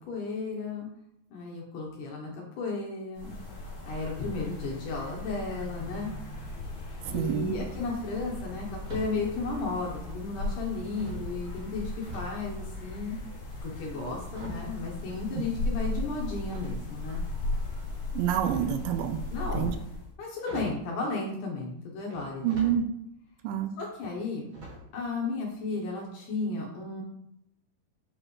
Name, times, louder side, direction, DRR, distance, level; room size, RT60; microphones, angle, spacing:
voice 1, 0.1-0.9 1.3-3.3 3.9-6.1 7.1-13.2 13.6-17.2 19.3-19.8 20.2-22.7 23.8-24.5 24.9-27.0, left 3 dB, 70° left, -1 dB, 2.5 m, -34 dB
sound 1, 3.1-20.1, left 2 dB, 45° left, 2.8 m, -37 dB
sound 2, 6.9-7.4 8.8-9.2 10.1-10.6 10.9-12.4 12.7-15.7 16.5-17.2 18.2-18.9 20.0-20.1 20.4-20.9 22.1-22.8 23.2-23.3 24.5-25.0 25.3-25.5 25.8-25.9, right 1 dB, 40° right, 2.4 m, -44 dB
voice 2, 7.1-7.5 15.4-15.5 18.1-19.2 19.5-19.7 22.4-22.8 23.4-23.7, right 9 dB, 80° right, 7 dB, 2.2 m, -27 dB
7.9 x 5.7 x 3.1 m, 0.78 s
omnidirectional pair, 4.2 m